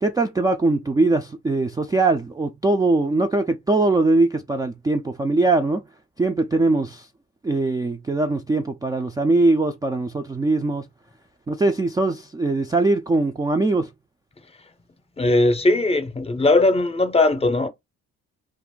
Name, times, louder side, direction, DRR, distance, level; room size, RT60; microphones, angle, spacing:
voice 1, 0.0-5.8 6.2-7.1 7.4-10.8 11.5-13.9, right 2 dB, 15° right, 0.3 m, -21 dB
voice 2, 15.2-17.7, left 2 dB, 20° left, 0.6 m, -19 dB
2.5 x 2.5 x 3.6 m
cardioid pair, 90°, 30 cm